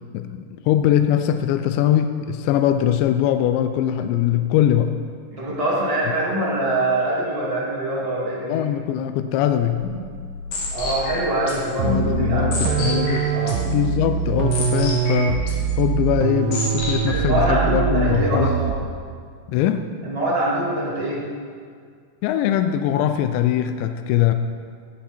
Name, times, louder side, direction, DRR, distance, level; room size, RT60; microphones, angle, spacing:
voice 1, 0.1-4.9 8.5-9.8 11.8-13.3 13.7-15.4 15.8-18.5 19.5-19.9 22.2-24.3, left 11 dB, 80° left, 8 dB, 2.7 m, -21 dB
voice 2, 5.4-8.6 10.7-13.6 17.1-18.8 20.0-21.2, right 1 dB, 70° right, -7 dB, 0.3 m, -24 dB
sound 1, 9.5-17.4, left 2 dB, 55° left, 2.9 m, -30 dB
sound 2, 11.8-19.0, right 8 dB, 90° right, 3.2 m, -23 dB
17.5 x 9.5 x 4.4 m, 2.1 s
omnidirectional pair, 5.5 m